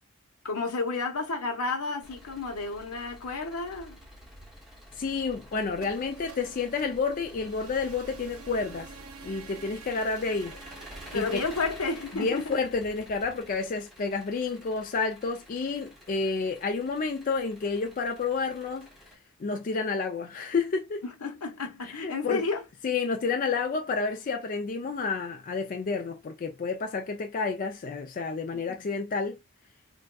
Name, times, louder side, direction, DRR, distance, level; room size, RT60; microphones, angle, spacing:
voice 1, 0.4-4.0 11.1-12.6 21.2-22.6, left 3 dB, 85° left, 1.1 m, -31 dB
Engine, 2.0-19.2, equal, ahead, 0.9 m, -50 dB
voice 2, 5.0-8.9 9.2-10.6 11.1-11.4 12.1-18.9 19.4-21.0 22.0-22.4 22.8-29.4, left 4 dB, 40° left, 0.4 m, -30 dB
sound 1, 5.7-13.6, right 4 dB, 80° right, 0.8 m, -48 dB
3.5 x 2.5 x 2.3 m
head